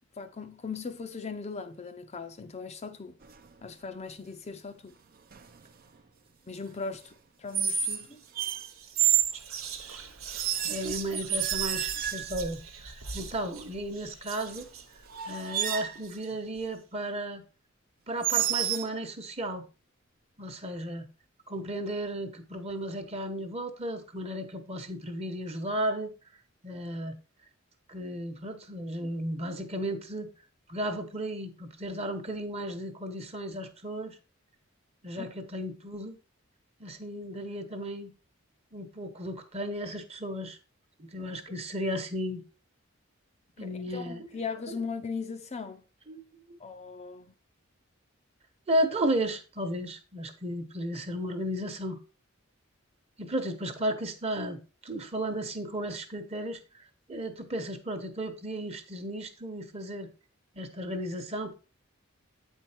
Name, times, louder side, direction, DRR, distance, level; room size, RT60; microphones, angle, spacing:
voice 1, 0.2-3.2 3.6-5.0 6.5-7.1 7.4-8.2 35.2-35.3 43.6-45.8 46.6-47.3, left 5 dB, 30° left, 0.5 m, -38 dB
sound 1, 3.2-3.5 5.3-5.6 7.5-8.0 8.4-9.4 10.4-12.4 14.6-14.7 15.1-16.0 18.2-18.9, right 10 dB, 45° right, 0.6 m, -29 dB
Whispering, 8.1-8.3 8.6-16.7, right 5 dB, 80° right, 1.2 m, -43 dB
voice 2, 10.7-12.6 12.9-14.7 15.3-17.4 18.1-19.6 20.4-21.1 21.5-26.1 26.6-27.1 27.9-30.3 30.7-34.1 35.0-36.2 36.8-38.1 38.7-40.6 41.0-42.4 43.6-44.3 44.7-44.8 46.1-46.2 46.5-46.6 48.7-52.0 53.2-56.6 57.1-60.1 60.5-61.5, right 1 dB, 30° right, 1.0 m, -34 dB
8.5 x 4.6 x 4.4 m
head